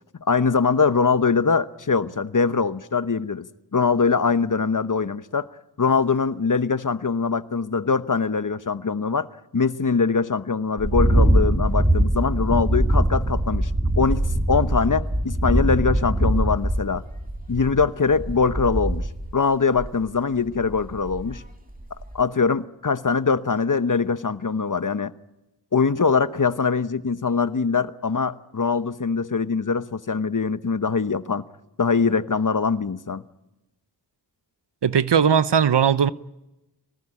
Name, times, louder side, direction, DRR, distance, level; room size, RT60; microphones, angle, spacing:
voice 1, 0.3-3.5 3.7-5.5 5.8-9.3 9.5-13.7 14.0-17.0 17.5-19.1 19.3-21.4 22.1-25.1 25.7-31.4 31.8-33.2, left 5 dB, 45° left, 1.0 m, -22 dB
sound 1, 10.8-19.3 19.8-20.0 20.6-21.5 21.8-22.2, right 1 dB, 20° right, 2.5 m, -22 dB
voice 2, 34.8-36.1, right 7 dB, 75° right, 0.8 m, -18 dB
25.5 x 19.0 x 9.9 m
wide cardioid pair, 50°, 42 cm